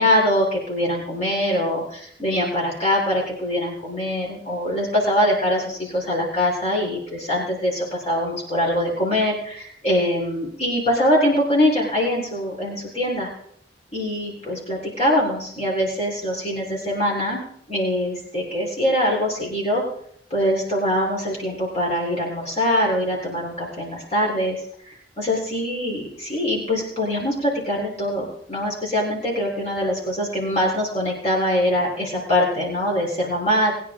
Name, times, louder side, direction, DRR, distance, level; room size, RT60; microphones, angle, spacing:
voice 1, 0.0-13.3 13.9-17.4 17.7-19.8 20.3-24.6 24.9-33.7, equal, 40° left, -3 dB, 3.8 m, -23 dB
20.5 x 10.0 x 3.7 m, 0.67 s
head